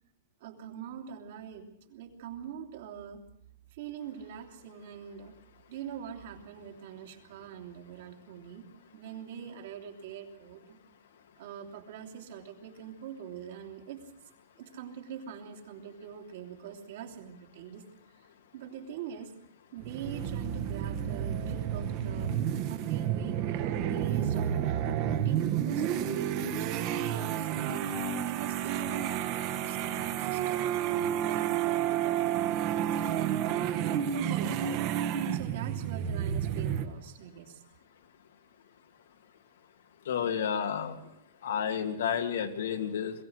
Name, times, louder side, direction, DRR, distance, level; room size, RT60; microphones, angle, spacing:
voice 1, 0.4-3.2 3.7-5.4 5.7-8.7 8.9-10.8 11.4-14.0 14.6-17.9 18.2-18.3 18.5-19.3 19.7-22.3 22.7-27.7 28.3-30.7 31.1-33.7 34.1-35.0 35.3-37.6, right 8 dB, 60° right, 3 dB, 2.9 m, -43 dB
sound 1, 19.8-36.9, right 10 dB, 35° right, 1.3 m, -30 dB
voice 2, 40.1-40.9 41.4-43.1, left 8 dB, 90° left, 5 dB, 2.6 m, -30 dB
22.0 x 16.0 x 7.9 m, 0.77 s
supercardioid pair, 170°, 0 cm